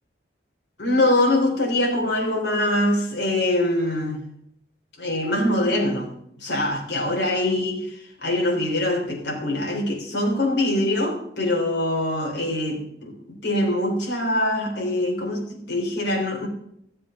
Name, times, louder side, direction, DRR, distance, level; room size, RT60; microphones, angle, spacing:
voice 1, 0.8-4.3 5.0-6.1 6.4-16.5, left 1 dB, 75° left, 3.5 m, -23 dB
14.0 x 7.5 x 6.8 m
head